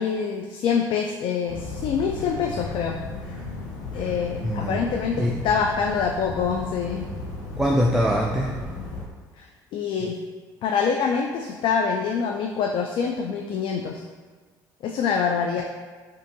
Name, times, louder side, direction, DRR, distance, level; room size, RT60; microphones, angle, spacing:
voice 1, 0.0-3.0 3.9-7.1 9.4-10.2 10.6-14.0 14.8-15.6, left 6 dB, 55° left, 2 dB, 0.4 m, -25 dB
sound 1, 1.5-9.0, left 2 dB, 85° left, 1.0 m, -35 dB
voice 2, 4.4-4.9 5.2-5.4 7.6-8.6, equal, 5° right, -1 dB, 0.4 m, -23 dB
5.2 x 2.6 x 2.6 m, 1.5 s
hypercardioid pair, 65°, 10 cm